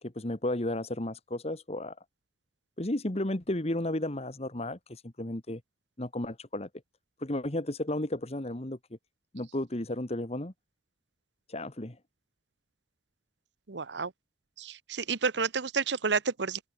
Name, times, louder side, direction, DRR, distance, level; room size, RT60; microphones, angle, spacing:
voice 1, 0.0-2.0 2.8-5.6 6.0-6.7 7.2-8.8 9.3-10.5 11.5-12.0, left 1 dB, 35° left, 1.8 m, -33 dB
voice 2, 13.7-14.1 14.6-16.6, right 5 dB, 75° right, 1.0 m, -30 dB
open air
head